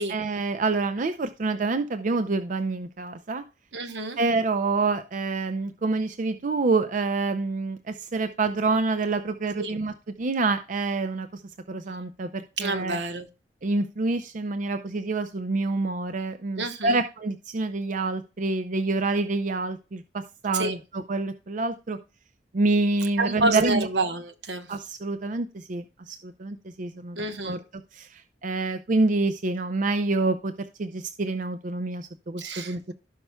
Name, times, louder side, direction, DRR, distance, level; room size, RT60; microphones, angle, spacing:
voice 1, 0.1-3.4 4.2-9.9 10.2-11.4 11.7-13.0 13.6-22.0 22.5-23.9 24.7-27.6 27.9-30.5 30.8-32.9, right 3 dB, 45° right, 9 dB, 0.5 m, -27 dB
voice 2, 3.7-4.2 9.6-9.8 12.6-13.3 16.6-17.0 20.5-20.8 23.2-24.7 27.1-27.6 32.4-32.9, right 2 dB, 75° right, 8 dB, 1.1 m, -28 dB
16.0 x 5.7 x 2.2 m, 0.31 s
head